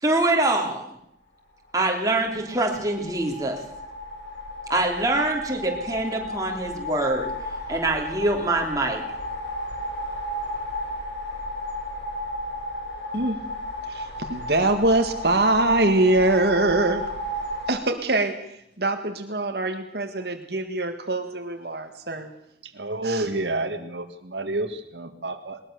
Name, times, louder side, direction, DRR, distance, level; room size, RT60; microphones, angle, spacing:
voice 1, 0.0-0.9 1.7-3.6 4.7-7.3 7.7-9.0, right 2 dB, 20° right, 1 dB, 3.3 m, -24 dB
sound 1, 1.8-17.7, equal, 80° left, 7.7 m, -34 dB
voice 2, 13.8-17.0 17.7-22.3 23.0-23.3, right 2 dB, 65° right, 5 dB, 1.7 m, -23 dB
voice 3, 22.6-25.6, right 2 dB, 85° right, 7 dB, 1.9 m, -29 dB
20.5 x 20.5 x 6.9 m, 0.73 s
head